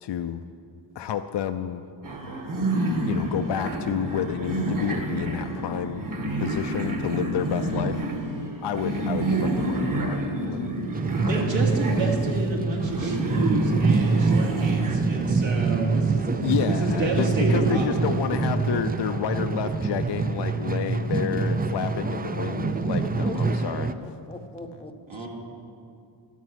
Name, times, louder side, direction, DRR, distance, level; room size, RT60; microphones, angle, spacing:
voice 1, 0.0-0.4 1.0-1.8 3.1-6.0 6.4-8.1 8.6-10.7 16.4-24.1, left 9 dB, 60° left, 8 dB, 0.5 m, -30 dB
sound 1, 2.0-15.0, right 1 dB, 45° right, 1.6 m, -29 dB
sound 2, 10.6-23.9, right 4 dB, 20° right, 0.3 m, -25 dB
voice 2, 11.2-17.9 25.1-25.3, right 2 dB, 75° right, -2 dB, 2.7 m, -29 dB
voice 3, 23.0-23.6 24.0-25.3, equal, 10° left, 7 dB, 0.7 m, -39 dB
12.5 x 9.2 x 8.0 m, 2.5 s
wide cardioid pair, 150°, 47 cm